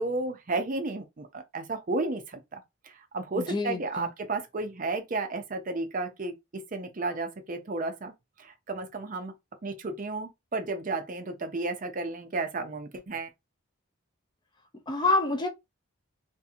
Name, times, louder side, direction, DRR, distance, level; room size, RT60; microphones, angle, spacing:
voice 1, 0.0-8.1 8.4-9.3 9.6-13.3, right 3 dB, 40° right, 0.5 m, -33 dB
voice 2, 3.4-4.1 14.9-15.5, left 2 dB, 20° left, 0.4 m, -27 dB
2.8 x 2.6 x 2.4 m
head